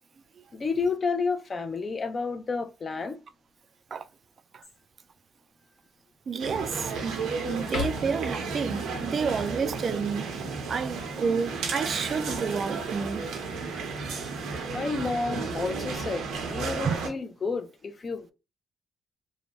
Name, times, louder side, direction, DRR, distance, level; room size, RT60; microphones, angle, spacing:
voice 1, 0.5-3.2 14.7-18.3, left 4 dB, 35° left, 0.5 m, -30 dB
sound 1, 4.6-5.1 5.6-5.7 6.3-7.1 7.6-8.4 11.8-13.2 14.6-15.1, left 6 dB, 80° left, 0.9 m, -40 dB
voice 2, 6.3-10.4 10.7-13.3 16.8-17.0, right 6 dB, 50° right, 0.3 m, -30 dB
sound 2, 6.4-17.1, right 4 dB, 85° right, 0.8 m, -33 dB
2.7 x 2.2 x 3.1 m
cardioid pair, 90°, 0 cm